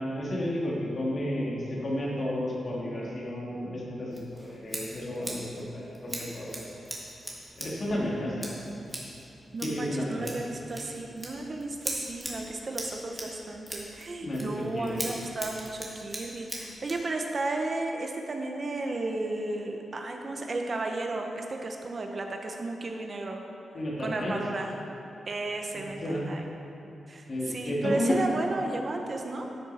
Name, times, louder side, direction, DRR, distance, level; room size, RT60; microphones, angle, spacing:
voice 1, 0.0-6.7 7.6-8.5 9.6-10.3 14.2-15.1 23.7-24.3 26.0-26.3 27.3-28.1, left 1 dB, 45° left, -5 dB, 2.6 m, -32 dB
Scissors, 4.1-17.1, right 1 dB, 10° right, 2.0 m, -41 dB
voice 2, 9.5-23.4 24.0-24.7 25.3-26.4 27.1-29.5, right 2 dB, 40° right, 3 dB, 0.9 m, -33 dB
12.5 x 7.2 x 4.3 m, 3.0 s
wide cardioid pair, 110°, 0 cm